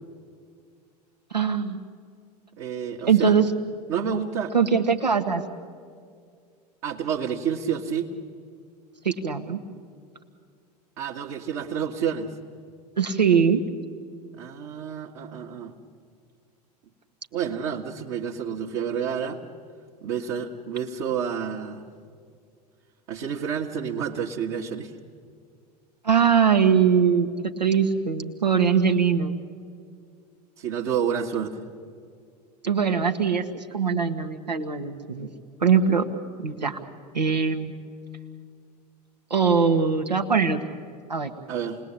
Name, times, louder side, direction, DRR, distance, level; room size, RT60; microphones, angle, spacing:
voice 1, 1.3-1.8 3.0-3.5 4.5-5.4 9.0-9.6 13.0-13.6 26.0-27.3 27.6-29.4 32.6-35.3 35.6-36.1 36.4-36.8 37.1-37.7 39.3-40.8 41.1-41.3, right 6 dB, 85° right, 5 dB, 1.5 m, -21 dB
voice 2, 2.6-3.3 3.9-4.5 6.8-8.1 11.0-12.3 14.4-15.7 17.3-19.4 20.0-21.8 23.1-24.9 30.6-31.5 41.5-41.8, right 7 dB, 50° right, -3 dB, 1.6 m, -29 dB
28.5 x 19.5 x 8.8 m, 2.2 s
figure-of-eight pair, 85°, 21 cm